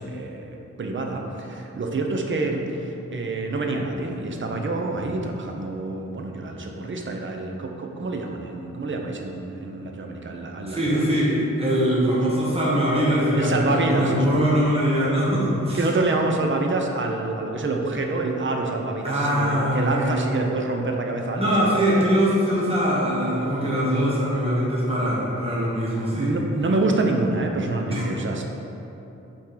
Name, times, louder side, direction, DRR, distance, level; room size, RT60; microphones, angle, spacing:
voice 1, 0.0-11.0 12.3-12.4 13.3-14.4 15.7-21.8 26.2-28.4, right 2 dB, 45° right, 2 dB, 0.7 m, -27 dB
voice 2, 10.7-15.8 19.0-20.2 21.3-26.3 27.9-28.0, equal, 20° right, -7 dB, 1.3 m, -22 dB
5.7 x 4.4 x 4.9 m, 2.9 s
wide cardioid pair, 125°, 29 cm